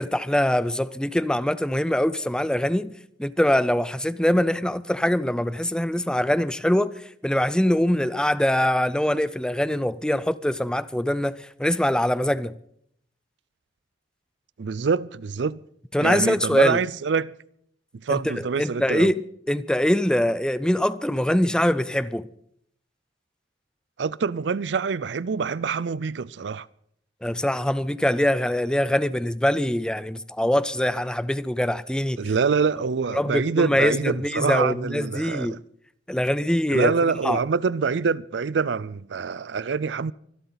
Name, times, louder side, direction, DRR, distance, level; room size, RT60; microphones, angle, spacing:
voice 1, 0.0-2.9 3.2-6.9 7.2-12.5 15.9-16.8 18.1-22.3 27.2-32.2 33.1-35.5 36.1-36.9 37.2-37.4, left 1 dB, 5° left, 0.5 m, -23 dB
voice 2, 14.6-15.6 16.0-17.3 18.0-19.1 24.0-26.7 32.2-35.6 36.7-40.1, right 5 dB, 80° right, 0.5 m, -25 dB
24.5 x 12.0 x 4.0 m
head